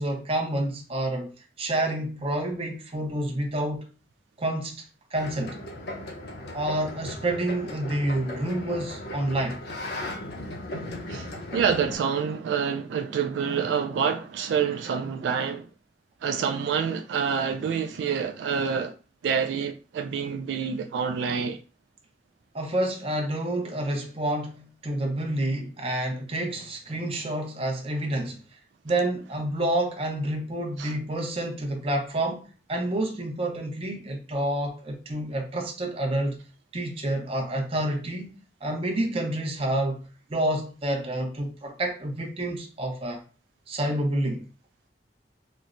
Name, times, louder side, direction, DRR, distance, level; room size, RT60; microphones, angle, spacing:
voice 1, 0.0-3.9 4.4-4.8 5.1-5.6 6.5-9.6 22.5-28.4 28.8-36.4 36.7-38.3 38.6-43.2 43.7-44.5, right 1 dB, 35° right, 0.7 m, -28 dB
sound 1, 5.2-12.0, left 1 dB, 60° left, 0.7 m, -37 dB
voice 2, 11.1-15.7 16.2-18.9 19.2-21.6 30.8-30.9, right 6 dB, 80° right, 0.3 m, -27 dB
4.2 x 2.1 x 2.4 m
head